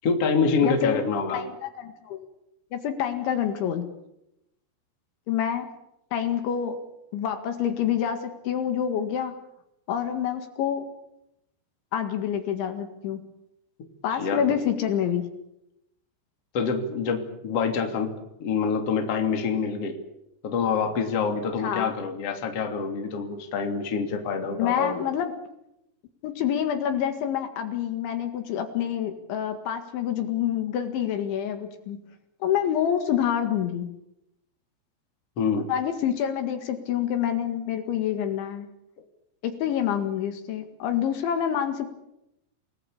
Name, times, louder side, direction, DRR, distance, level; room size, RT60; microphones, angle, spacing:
voice 1, 0.0-1.4 14.2-14.5 16.5-18.1 18.4-20.0 20.4-25.0 35.4-35.7, left 5 dB, 35° left, 4 dB, 3.1 m, -26 dB
voice 2, 0.6-1.0 1.3-2.3 2.7-3.9 5.3-5.7 6.1-6.8 7.1-9.4 9.9-10.9 11.9-13.2 14.0-15.3 21.6-21.9 24.6-25.3 26.2-32.0 32.4-33.9 35.7-38.7 39.4-41.9, left 9 dB, 70° left, 7 dB, 4.1 m, -27 dB
29.0 x 19.0 x 8.7 m, 0.84 s
omnidirectional pair, 5.8 m